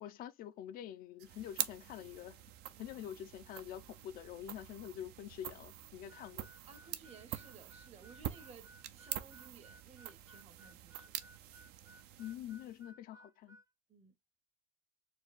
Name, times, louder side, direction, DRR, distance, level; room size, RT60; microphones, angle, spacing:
voice 1, 0.0-2.4 2.8-6.5 12.2-13.6, left 11 dB, 55° left, 0.5 m, -46 dB
sound 1, 1.2-12.9, right 12 dB, 65° right, 0.6 m, -46 dB
Harmonica, 6.1-13.7, right 1 dB, 15° right, 0.3 m, -60 dB
voice 2, 6.7-11.1 13.9-14.2, right 5 dB, 35° right, 0.9 m, -58 dB
4.6 x 2.3 x 4.1 m
supercardioid pair, 105°, 18 cm